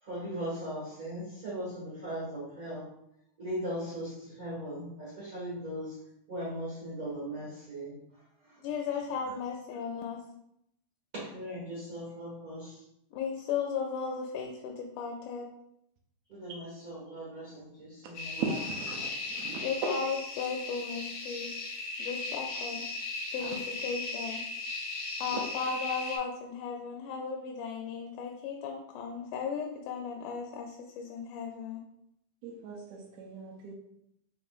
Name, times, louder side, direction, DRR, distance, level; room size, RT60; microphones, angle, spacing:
voice 1, 0.0-2.9 3.4-6.0 6.3-7.9 8.4-8.6 11.3-12.8 16.3-18.4, equal, 35° right, -7 dB, 1.5 m, -39 dB
voice 2, 8.6-10.2 13.1-15.5 19.6-21.6 22.0-22.8 23.3-24.4 25.2-31.8, left 6 dB, 80° left, 1 dB, 2.0 m, -36 dB
sound 1, 18.1-26.2, left 3 dB, 65° left, 1.7 m, -37 dB
voice 3, 18.4-19.7 23.4-23.6 25.3-25.4 32.4-33.7, right 4 dB, 80° right, 0 dB, 1.8 m, -38 dB
5.0 x 4.3 x 2.4 m, 0.78 s
omnidirectional pair, 3.6 m